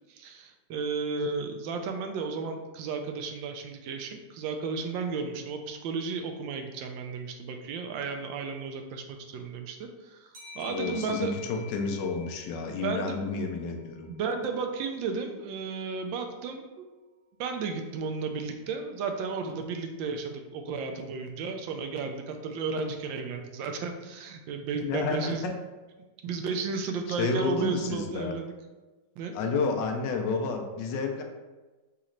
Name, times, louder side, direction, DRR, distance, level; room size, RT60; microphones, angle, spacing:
voice 1, 0.1-10.3 10.5-11.3 12.8-13.2 13.8-16.8 17.4-25.5 26.2-28.5 29.2-29.4, right 4 dB, 85° right, 5 dB, 1.3 m, -33 dB
sound 1, 10.3-13.7, left 6 dB, 55° right, 1.4 m, -47 dB
voice 2, 10.7-14.1 24.8-25.5 27.1-28.3 29.3-31.2, left 4 dB, 75° left, 4 dB, 1.2 m, -30 dB
4.2 x 3.0 x 3.8 m, 1.2 s
omnidirectional pair, 2.0 m